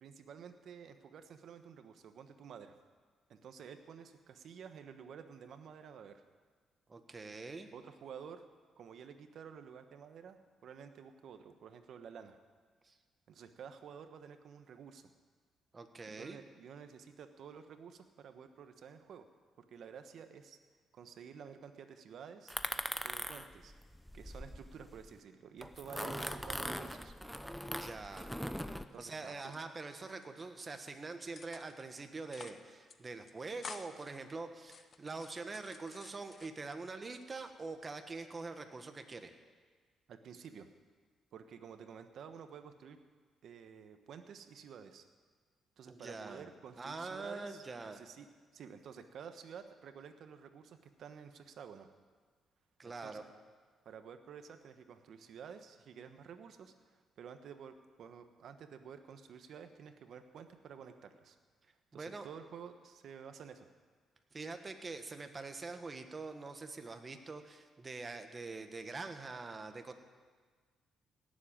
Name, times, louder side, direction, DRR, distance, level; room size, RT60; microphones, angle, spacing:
voice 1, 0.0-2.7 3.3-6.2 7.7-8.5 8.8-12.4 13.3-15.1 16.1-19.2 19.6-20.6 20.9-22.5 23.0-23.7 24.1-27.1 28.8-29.4 40.1-40.7 41.3-43.0 43.4-45.0 45.8-48.3 48.5-51.9 52.8-53.2 53.8-61.4 61.9-63.7, right 7 dB, 65° right, 8 dB, 1.2 m, -51 dB
voice 2, 6.9-7.7 12.8-13.0 15.7-16.4 27.8-28.3 29.0-39.3 45.9-46.5 46.8-48.0 52.8-53.2 61.9-62.3 64.3-69.9, right 3 dB, 30° right, 7 dB, 1.4 m, -44 dB
sound 1, 22.5-25.1 25.6-28.8, equal, ahead, 0.7 m, -41 dB
sound 2, 28.0-29.0 29.3-30.3 30.6-30.9 31.4-31.9 32.2-32.6 32.9-33.0 33.3-34.1 34.6-36.8 37.2-37.8, left 5 dB, 45° left, 0.9 m, -52 dB
17.5 x 7.7 x 8.8 m, 1.5 s
cardioid pair, 90°, 0 cm